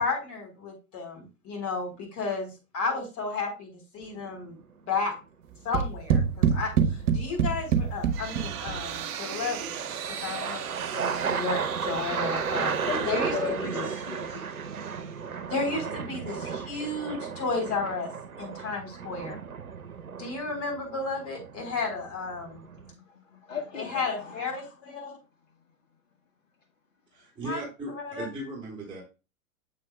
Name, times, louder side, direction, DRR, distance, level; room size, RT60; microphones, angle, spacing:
voice 1, 0.0-4.6 4.9-5.2 5.6-9.8 10.1-13.8 15.5-18.1 18.4-19.4 20.2-22.6 23.7-25.2 27.4-27.6 27.9-28.3, left 4 dB, 35° left, 1 dB, 4.2 m, -33 dB
sound 1, 4.0-4.5 8.3-22.9, right 6 dB, 90° right, 0.8 m, -34 dB
sound 2, 5.7-9.0, right 7 dB, 60° right, 1.1 m, -25 dB
sound 3, 7.8-15.6, right 9 dB, 30° right, 0.9 m, -39 dB
voice 2, 12.8-14.4 22.9-24.7, left 6 dB, 65° left, 1 dB, 1.8 m, -37 dB
voice 3, 27.1-29.0, right 2 dB, 10° right, -3 dB, 3.1 m, -37 dB
7.4 x 7.2 x 2.3 m, 0.29 s
figure-of-eight pair, 100°, 42 cm